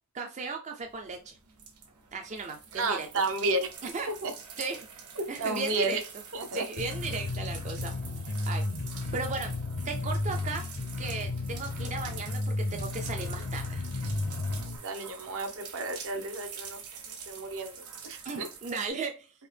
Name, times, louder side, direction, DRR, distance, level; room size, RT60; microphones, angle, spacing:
voice 1, 0.1-1.4 2.1-3.1 3.8-4.1 4.6-4.9 5.3-6.0 6.5-7.9 8.5-8.6 9.1-9.5 9.8-10.7 11.0-13.8 18.2-19.3, right 4 dB, 30° right, 4 dB, 0.4 m, -36 dB
sound 1, 0.8-18.9, right 6 dB, 80° right, 1.2 m, -46 dB
voice 2, 2.7-3.7 4.2-4.3 5.2-6.0 6.3-6.6 14.6-16.8 17.3-18.5, right 2 dB, 65° right, 6 dB, 0.8 m, -32 dB
sound 2, 6.8-14.8, left 2 dB, 60° left, 0.6 m, -33 dB
4.4 x 2.8 x 3.3 m, 0.32 s
head